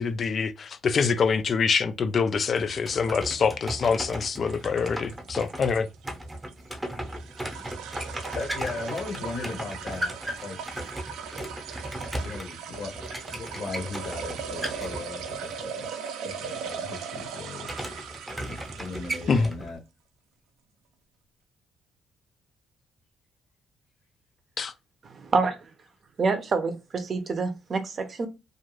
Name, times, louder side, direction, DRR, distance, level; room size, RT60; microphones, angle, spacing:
voice 1, 0.0-5.9 19.3-19.5 24.6-24.7, left 5 dB, 50° left, 0.4 m, -25 dB
sound 1, 2.4-19.6, right 7 dB, 90° right, 0.4 m, -39 dB
sound 2, 2.5-15.5 17.6-19.8, right 1 dB, 15° right, 0.8 m, -36 dB
voice 2, 8.4-10.6 11.8-17.7 18.5-19.8, left 3 dB, 75° left, 0.9 m, -38 dB
voice 3, 25.0-25.6 26.2-28.3, right 4 dB, 45° right, 0.6 m, -27 dB
2.5 x 2.4 x 3.0 m
cardioid pair, 90°, 0 cm